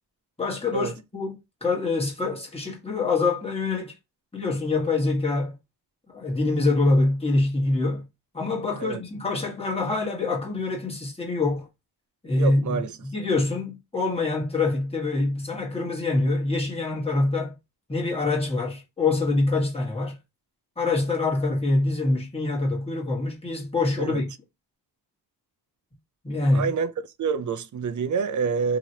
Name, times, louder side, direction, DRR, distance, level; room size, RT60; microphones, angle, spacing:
voice 1, 0.4-3.9 4.3-5.6 6.1-8.1 8.3-11.7 12.2-17.6 17.9-20.2 20.8-24.3 26.2-26.7, left 3 dB, 15° left, 1.3 m, -25 dB
voice 2, 12.4-12.9 24.0-24.2 26.5-26.9 27.2-28.8, right 5 dB, 45° right, 0.5 m, -27 dB
2.9 x 2.9 x 2.8 m
cardioid pair, 85°, 41 cm